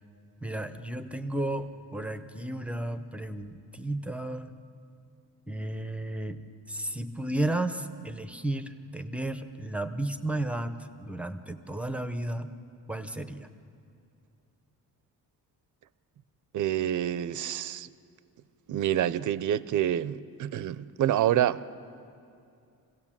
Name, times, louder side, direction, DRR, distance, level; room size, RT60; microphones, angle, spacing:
voice 1, 0.4-4.5 5.5-6.4 6.7-12.5 12.9-13.5, right 1 dB, 5° right, 0.6 m, -33 dB
voice 2, 16.5-17.9 18.7-21.6, right 11 dB, 55° right, 0.6 m, -27 dB
26.5 x 16.5 x 7.4 m
wide cardioid pair, 175°, 36 cm